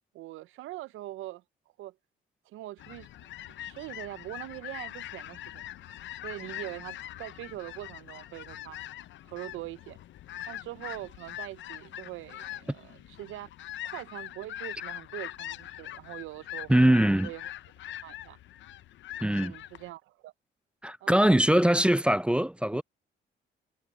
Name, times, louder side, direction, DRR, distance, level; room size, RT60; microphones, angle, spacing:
voice 1, 0.1-1.4 1.8-2.0 2.5-3.1 3.5-5.6 6.2-8.8 9.2-10.0 10.5-13.5 13.8-16.7 17.2-17.4 18.0-18.4 19.3-20.3 21.0-21.4 22.7-22.8, right 16 dB, 85° right, 0.5 m, -42 dB
sound 1, 2.8-19.9, left 13 dB, 70° left, 0.6 m, -42 dB
voice 2, 16.7-17.3 19.2-19.6 20.8-22.8, right 1 dB, 5° right, 0.3 m, -22 dB
cardioid pair, 90°, 20 cm